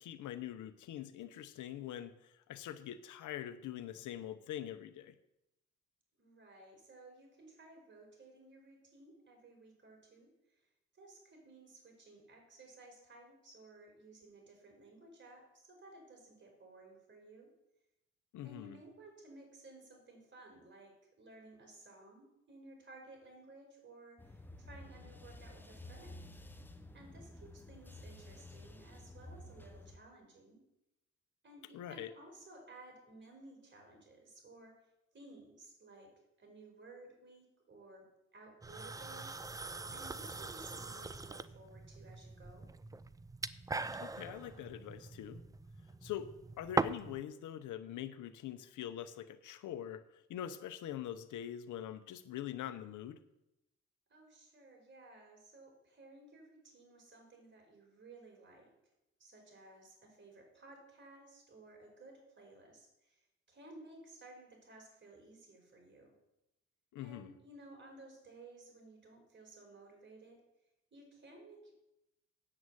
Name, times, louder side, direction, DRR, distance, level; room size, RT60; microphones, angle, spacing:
voice 1, 0.0-5.1 18.3-18.8 31.7-32.1 44.0-45.4 46.0-46.3 46.6-53.2 66.9-67.3, left 11 dB, 80° left, 11 dB, 0.9 m, -44 dB
voice 2, 6.2-10.6 10.9-17.5 18.4-26.3 26.9-30.6 31.4-34.7 35.1-36.1 36.4-39.3 39.9-42.7 54.1-58.7 59.2-66.1 67.0-70.4 70.9-71.7, right 2 dB, 40° right, 1 dB, 4.9 m, -57 dB
sound 1, 24.2-30.0, left 1 dB, 5° left, 0.8 m, -52 dB
sound 2, 38.6-47.2, right 3 dB, 10° right, 0.4 m, -41 dB
8.6 x 7.8 x 8.0 m, 0.88 s
cardioid pair, 90°, 30 cm